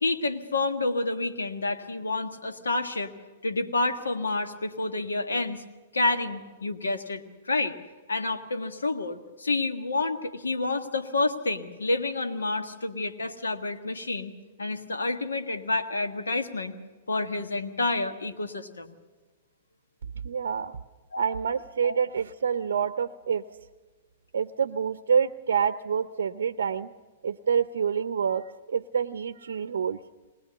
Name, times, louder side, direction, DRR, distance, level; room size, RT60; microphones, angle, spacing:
voice 1, 0.0-3.1 3.4-5.6 5.9-7.7 8.1-14.3 14.6-16.7 17.1-18.9 21.1-21.2 21.8-22.0, left 2 dB, 85° left, 7 dB, 1.5 m, -29 dB
voice 2, 20.2-20.8 21.2-23.4 24.3-26.9 27.2-30.0, right 7 dB, 75° right, 13 dB, 0.6 m, -27 dB
20.0 x 20.0 x 6.9 m, 1.3 s
hypercardioid pair, 115°, 0 cm